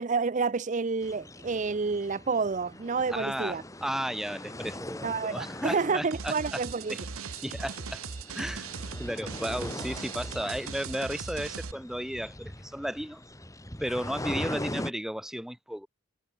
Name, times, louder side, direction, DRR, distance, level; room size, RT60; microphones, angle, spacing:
voice 1, 0.0-3.6 5.0-7.0, right 4 dB, 35° right, 0.5 m, -29 dB
sound 1, 1.0-14.9, left 1 dB, 15° left, 7.0 m, -41 dB
voice 2, 3.1-6.6 6.9-7.0 7.4-8.0 8.3-8.7 9.0-13.2 13.8-15.9, equal, ahead, 0.9 m, -34 dB
sound 2, 6.1-11.7, right 5 dB, 80° right, 1.2 m, -39 dB
head